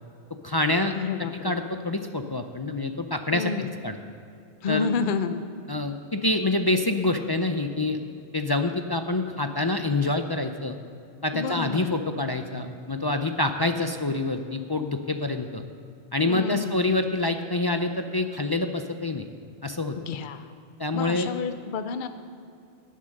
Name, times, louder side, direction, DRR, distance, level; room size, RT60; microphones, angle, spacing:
voice 1, 0.4-1.0 1.4-3.5 3.8-4.0 4.7-4.9 5.7-8.0 8.3-10.8 11.2-15.6 16.1-19.3 19.6-20.0 20.8-21.3, left 2 dB, 35° left, 6 dB, 0.4 m, -26 dB
voice 2, 0.9-1.6 3.3-3.8 4.6-5.4 11.3-11.9 16.3-16.8 20.0-20.5 20.9-22.1, left 5 dB, 50° left, 10 dB, 0.8 m, -30 dB
18.0 x 7.5 x 6.5 m, 2.5 s
omnidirectional pair, 1.2 m